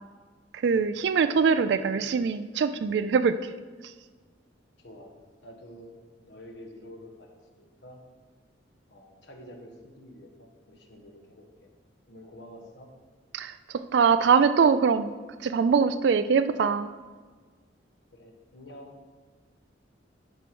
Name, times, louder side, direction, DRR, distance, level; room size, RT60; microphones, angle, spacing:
voice 1, 0.5-3.5 3.8-3.9 13.3-15.1 15.4-16.9, right 6 dB, 60° right, 11 dB, 0.3 m, -23 dB
voice 2, 1.5-2.0 4.8-5.1 5.4-8.0 8.9-11.7 12.1-12.9 18.1-18.9, left 1 dB, 70° left, 1 dB, 1.4 m, -48 dB
11.0 x 4.5 x 4.6 m, 1.4 s
head